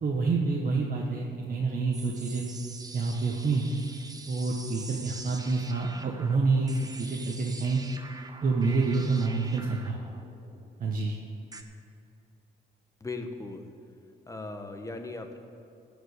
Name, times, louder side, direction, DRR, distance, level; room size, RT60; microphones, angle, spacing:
voice 1, 0.0-2.4 2.9-3.7 4.3-7.8 8.4-10.0 10.8-11.2, right 4 dB, 45° right, -1 dB, 1.2 m, -28 dB
sound 1, 1.9-11.6, right 3 dB, 20° right, 0.9 m, -45 dB
voice 2, 13.0-13.7 14.3-15.4, left 3 dB, 15° left, 5 dB, 1.2 m, -38 dB
14.0 x 5.2 x 8.3 m, 2.6 s
cardioid pair, 90°, 20 cm